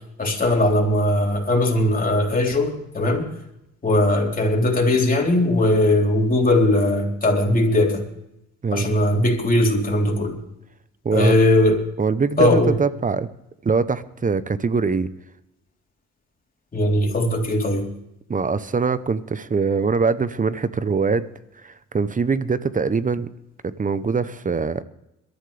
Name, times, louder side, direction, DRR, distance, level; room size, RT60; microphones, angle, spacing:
voice 1, 0.2-3.3 3.8-8.1 8.7-10.4 11.1-11.9 12.4-12.8 16.7-17.9, left 1 dB, 30° left, 0 dB, 3.7 m, -19 dB
voice 2, 8.6-8.9 11.0-11.3 12.0-13.3 13.6-15.1 18.3-21.2 21.6-23.3 23.6-24.8, right 5 dB, 25° right, 15 dB, 0.8 m, -22 dB
22.0 x 13.0 x 3.4 m, 0.87 s
cardioid pair, 90°, 30 cm